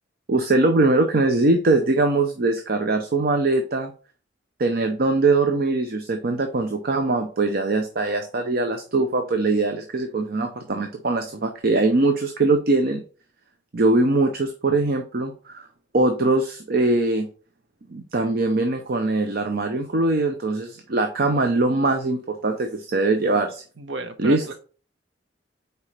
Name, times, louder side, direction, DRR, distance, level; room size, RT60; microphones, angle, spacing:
voice 1, 0.3-3.9 4.6-13.0 13.7-15.7 15.9-17.3 17.9-23.6 24.2-24.5, right 2 dB, 55° right, 5 dB, 0.7 m, -22 dB
voice 2, 23.8-24.5, right 3 dB, 80° right, 8 dB, 1.0 m, -33 dB
5.0 x 4.7 x 4.2 m, 0.38 s
head